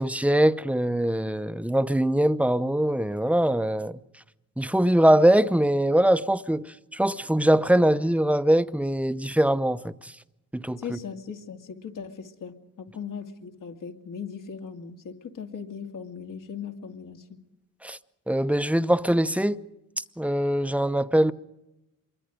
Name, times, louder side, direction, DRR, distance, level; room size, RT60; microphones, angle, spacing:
voice 1, 0.0-4.0 4.6-10.2 10.5-11.0 17.8-18.0 18.3-19.6 20.0-21.3, right 1 dB, 5° right, 0.8 m, -22 dB
voice 2, 10.8-17.4, left 6 dB, 70° left, 2.5 m, -38 dB
26.5 x 23.0 x 5.1 m
cardioid pair, 95°, 33 cm